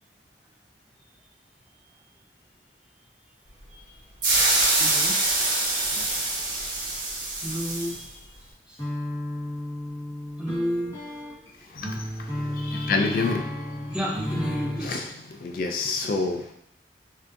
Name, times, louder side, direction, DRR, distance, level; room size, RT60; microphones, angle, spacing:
voice 1, 4.2-5.3 5.9-6.1 7.4-8.4 8.7-8.8 10.4-10.9 11.9-12.7 13.9-15.0, equal, 5° right, -3 dB, 0.6 m, -33 dB
sound 1, 4.2-8.0, right 2 dB, 45° right, 1.1 m, -24 dB
sound 2, 8.8-14.9, left 1 dB, 15° left, 1.2 m, -32 dB
voice 2, 12.6-13.5 14.8-15.1 15.4-16.4, left 3 dB, 50° left, 3 dB, 0.3 m, -26 dB
6.6 x 2.6 x 2.5 m, 0.79 s
head